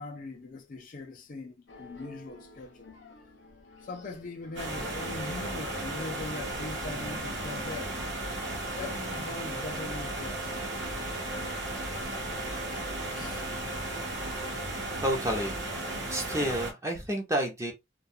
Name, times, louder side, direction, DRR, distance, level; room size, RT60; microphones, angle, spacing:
voice 1, 0.0-3.0 3.8-7.9 8.8-10.5 13.2-13.5, left 3 dB, 45° left, 0.4 m, -41 dB
sound 1, 1.7-16.6, left 3 dB, 75° left, 0.8 m, -52 dB
sound 2, 4.6-16.7, right 1 dB, 65° right, 0.8 m, -35 dB
voice 2, 15.0-15.6 16.1-17.7, right 1 dB, 15° right, 0.7 m, -29 dB
2.3 x 2.3 x 2.6 m
head